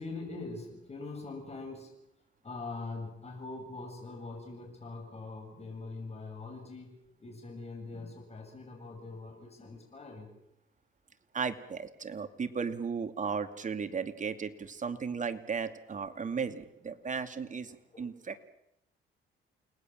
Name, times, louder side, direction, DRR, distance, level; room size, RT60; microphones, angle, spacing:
voice 1, 0.0-1.9 2.4-6.9 7.2-10.3 16.2-16.3 17.7-18.1, left 3 dB, 30° left, 2 dB, 7.8 m, -43 dB
voice 2, 11.3-18.4, right 5 dB, 40° right, 8 dB, 2.5 m, -35 dB
29.5 x 20.0 x 7.5 m, 0.80 s
cardioid pair, 90°, 20 cm